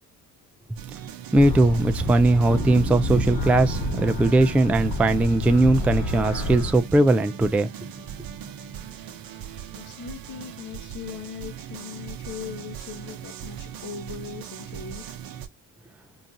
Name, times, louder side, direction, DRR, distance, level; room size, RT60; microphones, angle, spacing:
sound 1, 0.8-15.5, right 9 dB, 60° right, 0.8 m, -39 dB
sound 2, 1.3-6.7, left 1 dB, 65° left, 1.3 m, -29 dB
voice 1, 1.3-7.7, right 2 dB, 5° right, 0.3 m, -19 dB
sound 3, 2.5-8.9, right 4 dB, 30° right, 0.7 m, -37 dB
voice 2, 9.7-15.2, left 7 dB, 50° left, 0.8 m, -39 dB
3.9 x 2.4 x 2.6 m
cardioid pair, 95°, 39 cm